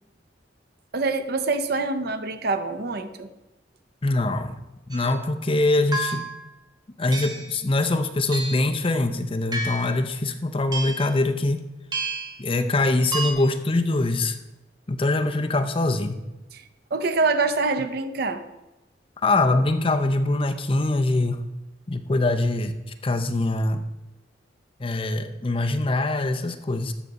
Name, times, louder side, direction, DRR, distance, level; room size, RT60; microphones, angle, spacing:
voice 1, 0.9-3.3 16.5-16.6 16.9-18.4, right 3 dB, 60° right, 9 dB, 0.7 m, -25 dB
voice 2, 4.0-4.6 4.9-6.3 7.0-11.6 12.4-14.4 14.9-16.2 19.2-21.4 21.9-22.7 23.0-23.9 24.8-26.9, left 2 dB, 30° left, 7 dB, 0.6 m, -23 dB
sound 1, 4.9-5.1 5.9-6.4 7.1-7.5 8.3-8.7 9.5-10.0 10.7-11.1 11.9-12.4 13.1-13.3, right 2 dB, 20° right, 1.2 m, -30 dB
13.0 x 4.9 x 4.1 m, 1.0 s
head